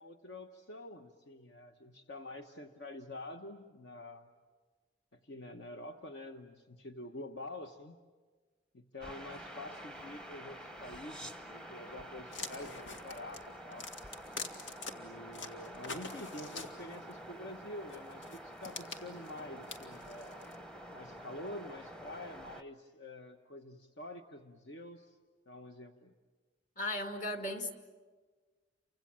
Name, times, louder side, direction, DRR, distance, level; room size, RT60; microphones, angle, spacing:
voice 1, 0.0-4.3 5.1-8.0 8.7-13.9 14.9-20.5 20.9-25.2 25.5-26.1, left 1 dB, 65° left, 5 dB, 1.1 m, -47 dB
sound 1, 9.0-22.6, equal, 5° left, 0.9 m, -48 dB
sound 2, 12.3-14.9 15.3-17.1 17.9-20.6, left 4 dB, 90° left, 2.1 m, -45 dB
voice 2, 26.8-27.7, left 1 dB, 45° left, 5 dB, 2.3 m, -36 dB
29.5 x 25.5 x 7.6 m, 1.4 s
head